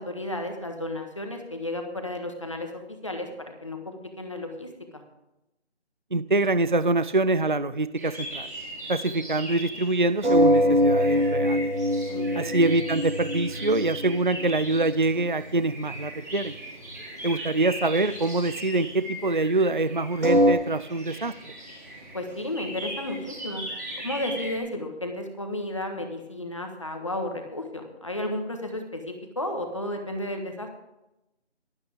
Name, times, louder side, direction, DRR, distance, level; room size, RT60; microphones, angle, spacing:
voice 1, 0.0-4.7 12.1-12.6 22.1-23.6 24.0-30.7, left 1 dB, 25° left, 4 dB, 1.5 m, -33 dB
voice 2, 6.1-8.5 8.9-11.7 12.4-16.5 17.2-21.5, right 2 dB, 45° right, 15 dB, 0.5 m, -25 dB
sound 1, 8.0-24.6, right 1 dB, 15° right, 3.0 m, -39 dB
sound 2, 10.2-14.4 14.7-15.3 15.7-15.9 16.4-16.5 20.2-20.5, equal, 90° right, 3.7 m, -23 dB
23.5 x 9.0 x 3.6 m, 0.92 s
figure-of-eight pair, 180°, 34 cm